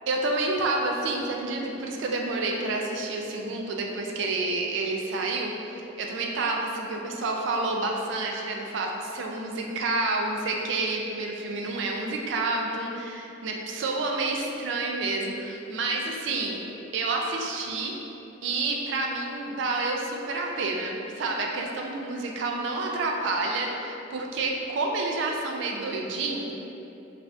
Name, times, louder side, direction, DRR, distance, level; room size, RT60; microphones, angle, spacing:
voice 1, 0.1-16.6 16.9-18.0 18.4-26.5, right 3 dB, 65° right, 0 dB, 0.4 m, -29 dB
2.5 x 2.4 x 3.2 m, 2.8 s
head